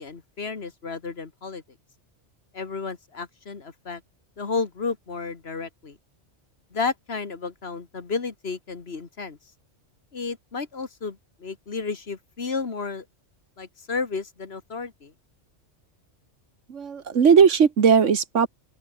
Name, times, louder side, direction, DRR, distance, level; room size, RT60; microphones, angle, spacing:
voice 1, 0.0-1.6 2.5-4.0 4.4-6.0 6.7-9.4 10.1-13.0 13.6-15.1, left 4 dB, 60° left, 2.0 m, -32 dB
voice 2, 16.7-18.5, right 6 dB, 80° right, 1.7 m, -18 dB
open air
omnidirectional pair, 1.2 m